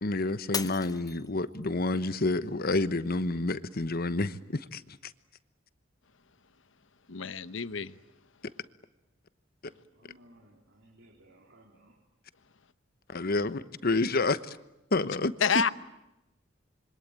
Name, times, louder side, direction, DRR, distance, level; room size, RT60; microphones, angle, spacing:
voice 1, 0.0-5.1 13.1-14.6 14.9-15.3, left 2 dB, 50° left, 1.1 m, -29 dB
Shatter, 0.5-1.8 2.4-2.8 3.4-3.5, left 5 dB, 20° left, 1.0 m, -37 dB
voice 2, 7.1-8.0 15.4-15.7, left 6 dB, 75° left, 1.0 m, -28 dB
voice 3, 9.6-12.0, right 1 dB, 70° right, 3.9 m, -59 dB
27.0 x 24.5 x 8.9 m
head